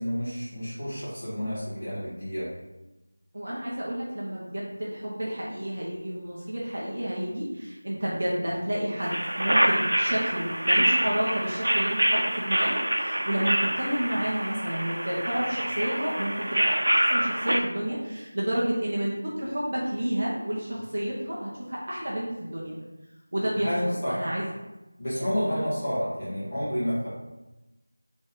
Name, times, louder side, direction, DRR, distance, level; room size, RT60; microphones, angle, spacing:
voice 1, 0.0-2.5 23.6-24.2 25.0-27.1, equal, 15° left, -12 dB, 1.7 m, -30 dB
voice 2, 3.3-22.8 23.3-24.5 25.5-25.7, right 1 dB, 30° right, -5 dB, 0.9 m, -30 dB
sound 1, 9.0-17.6, right 1 dB, 90° right, 0.7 m, -26 dB
5.1 x 3.5 x 5.3 m, 1.0 s
figure-of-eight pair, 180°, 0 cm